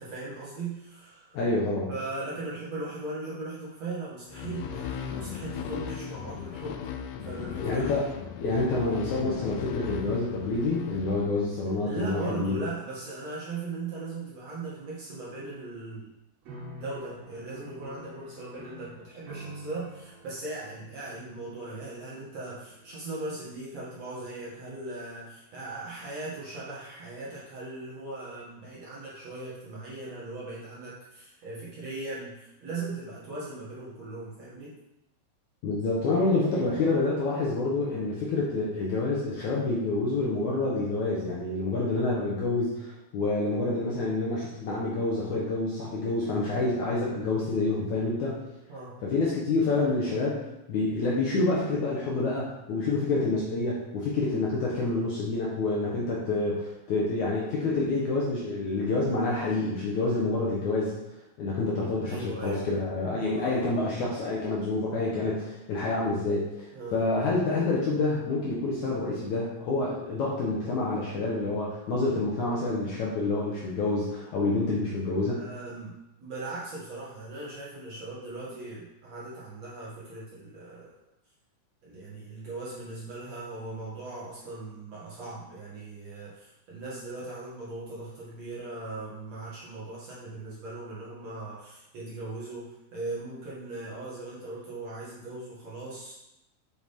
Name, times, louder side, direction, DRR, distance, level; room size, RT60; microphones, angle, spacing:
voice 1, 0.0-1.4 1.9-6.8 7.2-8.1 11.8-16.1 16.7-34.7 48.7-49.0 62.0-62.8 63.3-63.7 66.7-67.1 75.3-76.0 76.2-80.9 81.8-96.1, right 2 dB, 50° right, -8 dB, 2.5 m, -39 dB
voice 2, 1.3-1.9 7.6-8.1 8.4-12.7 35.6-48.4 49.0-61.0 61.4-66.7 66.9-75.4, left 2 dB, 65° left, -5 dB, 2.1 m, -28 dB
sound 1, 4.3-11.7, left 8 dB, 90° left, 2.7 m, -37 dB
sound 2, 16.4-24.8, right 1 dB, 70° right, 3.8 m, -48 dB
7.4 x 6.2 x 3.6 m, 0.90 s
omnidirectional pair, 4.5 m